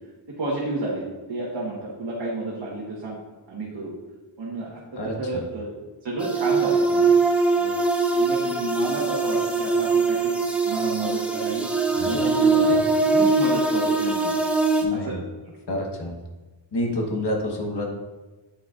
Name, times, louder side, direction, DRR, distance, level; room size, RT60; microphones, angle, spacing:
voice 1, 0.3-3.2 3.5-3.9 4.4-7.1 7.6-7.8 8.1-10.4 10.6-11.7 12.0-14.3 14.9-15.2, right 2 dB, 65° right, -5 dB, 1.3 m, -31 dB
voice 2, 5.0-5.4 11.9-12.3 12.7-12.8 13.1-13.2 14.3-14.4 14.8-15.2 15.7-16.2 16.7-17.9, left 1 dB, 55° left, 0 dB, 1.3 m, -29 dB
sound 1, 6.2-14.8, right 3 dB, 5° right, 0.6 m, -22 dB
8.3 x 6.0 x 2.5 m, 1.2 s
wide cardioid pair, 110°, 46 cm